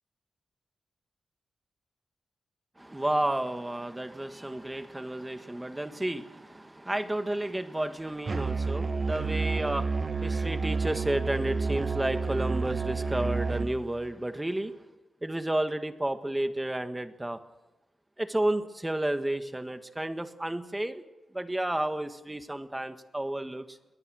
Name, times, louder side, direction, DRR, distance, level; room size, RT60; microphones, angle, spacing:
voice 1, 2.8-14.8 15.2-17.4 18.2-21.0 21.3-23.8, right 1 dB, 15° right, 9 dB, 1.6 m, -31 dB
Musical instrument, 8.3-13.8, right 4 dB, 45° right, 1.4 m, -30 dB
22.5 x 19.5 x 6.4 m, 1.1 s
cardioid pair, 80°, 0 cm